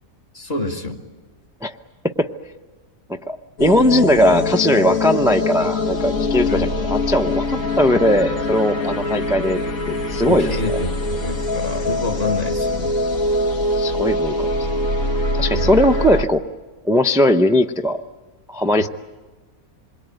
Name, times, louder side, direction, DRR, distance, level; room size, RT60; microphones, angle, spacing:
voice 1, 0.3-1.0 6.5-6.7 10.2-13.0 15.5-15.8, left 2 dB, 45° left, 4 dB, 2.1 m, -27 dB
voice 2, 3.3-10.6 13.8-14.5 15.3-16.4 16.8-18.0 18.5-18.9, left 1 dB, 5° right, 7 dB, 0.3 m, -18 dB
sound 1, 3.6-16.3, left 2 dB, 70° left, 2.3 m, -23 dB
27.0 x 22.0 x 9.2 m, 1.3 s
omnidirectional pair, 1.5 m